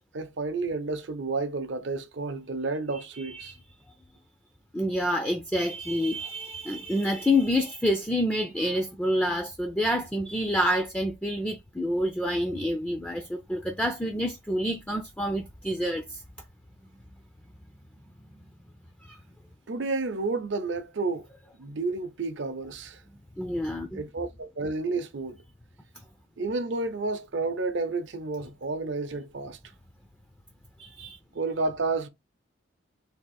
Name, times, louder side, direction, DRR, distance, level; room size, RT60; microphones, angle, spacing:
voice 1, 0.1-3.5 19.7-21.3 21.6-23.0 23.9-25.4 26.4-29.6 31.3-32.1, right 3 dB, 65° right, 0.6 m, -31 dB
voice 2, 4.7-16.2 19.0-19.2 23.4-24.0 30.8-31.2, left 1 dB, 5° left, 0.4 m, -28 dB
3.5 x 2.4 x 4.1 m
head